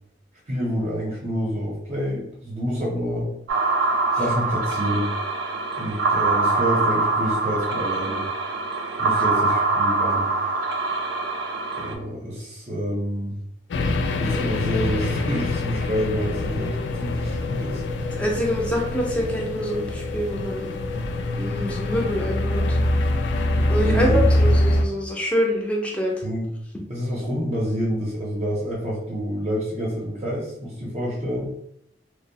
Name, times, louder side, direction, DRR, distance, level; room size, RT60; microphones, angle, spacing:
voice 1, 0.5-3.3 4.1-5.1 5.7-8.3 9.0-10.3 11.8-13.4 14.2-17.8 23.8-24.4 26.2-26.5 26.9-31.5, equal, 40° right, -5 dB, 0.6 m, -28 dB
sound 1, 3.5-11.9, right 3 dB, 80° right, 0.4 m, -24 dB
sound 2, 13.7-24.9, left 1 dB, 75° left, 0.3 m, -24 dB
voice 2, 18.1-20.7 21.4-22.8 23.7-26.2, equal, 5° left, -2 dB, 0.5 m, -26 dB
2.7 x 2.0 x 2.7 m, 0.75 s
head